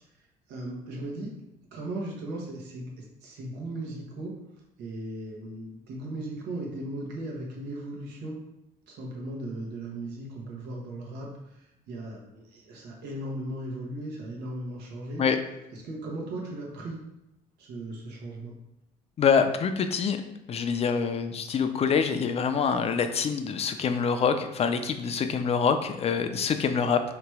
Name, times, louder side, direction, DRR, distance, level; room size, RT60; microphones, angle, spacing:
voice 1, 0.5-1.3 1.7-4.3 4.8-8.4 8.9-15.2 15.7-17.0 17.6-18.5, right 1 dB, 85° right, -2 dB, 1.1 m, -37 dB
voice 2, 19.2-20.2 20.5-27.0, left 6 dB, 35° left, 8 dB, 0.4 m, -25 dB
3.2 x 2.9 x 4.7 m, 0.86 s
cardioid pair, 110°, 17 cm